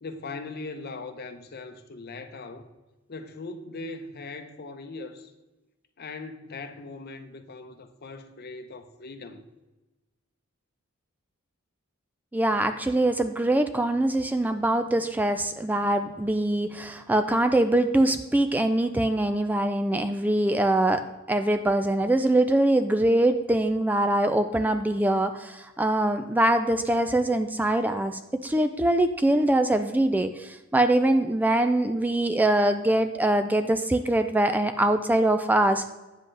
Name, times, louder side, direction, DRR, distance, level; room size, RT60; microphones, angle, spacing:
voice 1, 0.0-2.7 3.1-5.3 6.0-9.4, left 3 dB, 50° left, 0.7 m, -40 dB
voice 2, 12.3-35.9, right 1 dB, 10° right, 0.3 m, -23 dB
9.7 x 7.5 x 3.3 m
head